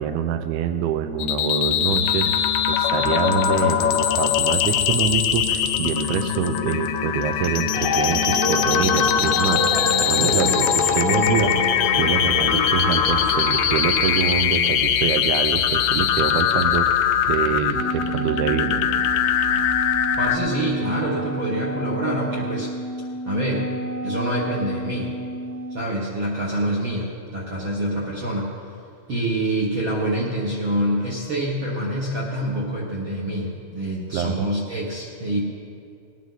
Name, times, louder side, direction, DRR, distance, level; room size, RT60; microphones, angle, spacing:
voice 1, 0.0-11.6 12.0-18.8 34.1-34.5, right 8 dB, 80° right, 8 dB, 1.9 m, -25 dB
sound 1, 1.2-20.4, left 9 dB, 80° left, 2.2 m, -21 dB
sound 2, 7.7-14.2, left 3 dB, 65° left, 1.0 m, -27 dB
Wind instrument woodwind instrument, 17.7-25.8, right 1 dB, 35° right, 0.9 m, -31 dB
voice 2, 20.2-22.7 23.2-23.7 24.0-25.1 25.7-28.5 29.1-35.4, right 1 dB, 55° right, -4 dB, 1.4 m, -26 dB
19.5 x 10.0 x 4.0 m, 2.4 s
omnidirectional pair, 4.3 m